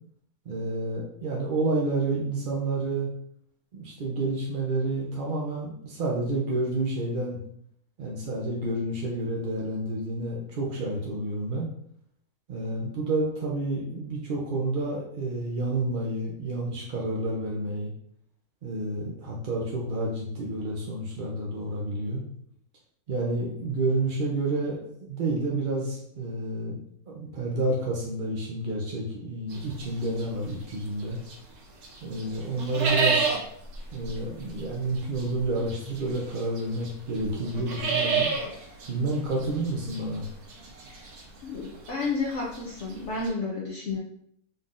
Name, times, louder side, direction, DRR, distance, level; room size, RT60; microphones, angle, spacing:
voice 1, 0.5-3.1 3.7-7.4 8.0-11.7 12.5-17.9 18.6-22.2 23.1-24.8 25.1-26.8 27.1-31.2 32.0-33.3 33.9-38.3 38.9-40.3, right 2 dB, 60° right, -3 dB, 0.5 m, -29 dB
sound 1, 29.5-31.5 31.8-43.3, right 5 dB, 80° right, 1.3 m, -31 dB
voice 2, 41.4-44.0, left 3 dB, 60° left, -3 dB, 0.9 m, -31 dB
3.9 x 3.7 x 2.5 m, 0.69 s
omnidirectional pair, 1.6 m